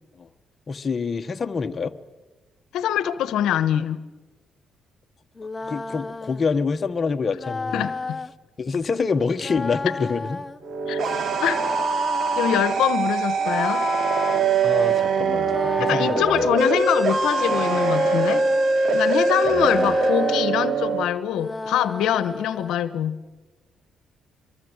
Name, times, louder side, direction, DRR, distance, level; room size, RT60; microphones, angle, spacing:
voice 1, 0.7-1.9 5.6-7.9 8.6-10.4 14.6-16.4 19.5-20.0, left 5 dB, 40° left, 7 dB, 1.2 m, -26 dB
voice 2, 2.7-4.0 7.7-8.2 10.9-11.0 11.4-11.6 12.4-13.8 15.8-18.4 18.9-23.2, left 10 dB, 85° left, 13 dB, 1.1 m, -24 dB
sound 1, 5.4-6.4 7.3-8.3 9.4-10.6 11.4-12.6 13.4-14.4 15.4-16.5 17.4-18.7 19.4-20.4 21.3-22.8, left 3 dB, 20° left, 1.0 m, -32 dB
sound 2, 10.6-21.0, right 4 dB, 60° right, 2.5 m, -22 dB
24.5 x 23.5 x 8.1 m, 1.2 s
cardioid pair, 90°, 0 cm